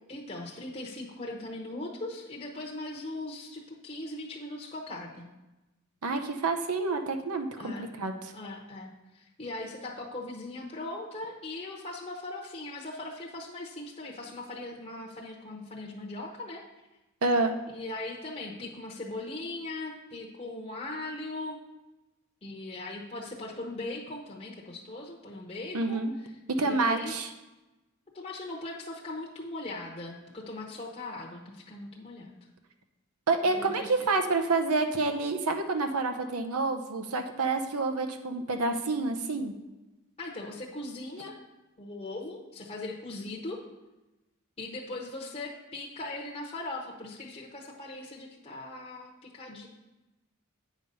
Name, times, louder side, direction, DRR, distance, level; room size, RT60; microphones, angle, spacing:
voice 1, 0.1-5.3 7.6-7.9 8.3-16.6 17.7-21.6 22.4-26.3 26.6-27.1 28.1-32.4 33.5-34.1 40.2-41.3 41.8-43.6 44.6-49.7, left 2 dB, 25° left, -2 dB, 0.8 m, -39 dB
voice 2, 6.0-8.3 17.2-17.5 25.7-26.1 26.5-27.3 33.3-39.5, right 3 dB, 85° right, 6 dB, 0.8 m, -28 dB
8.8 x 5.2 x 5.4 m, 1.0 s
head